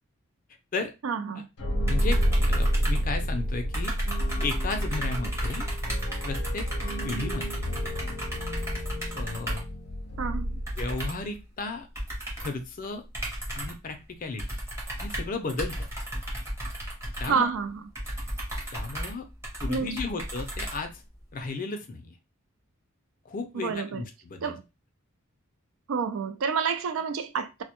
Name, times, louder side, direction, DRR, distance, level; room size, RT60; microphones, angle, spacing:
voice 1, 1.0-1.5 10.2-10.5 17.3-17.8 19.7-19.9 23.5-24.0 24.4-24.6 25.9-27.6, right 6 dB, 65° right, 0.4 m, -29 dB
sound 1, 1.6-11.2, equal, 90° left, 0.6 m, -29 dB
voice 2, 1.9-2.2 2.5-3.9 4.4-5.7 6.2-6.7 7.0-7.7 9.1-9.7 10.8-11.9 12.4-13.0 13.6-14.4 15.0-15.9 17.2-17.4 18.7-19.3 19.6-20.9 21.3-22.1 23.3-24.6, left 3 dB, 40° left, 0.4 m, -34 dB
sound 2, 1.9-3.5 3.7-9.8 10.7-11.3 12.0-12.6 13.1-13.9 14.4-21.2, equal, 15° right, 0.7 m, -34 dB
2.1 x 2.1 x 2.8 m
head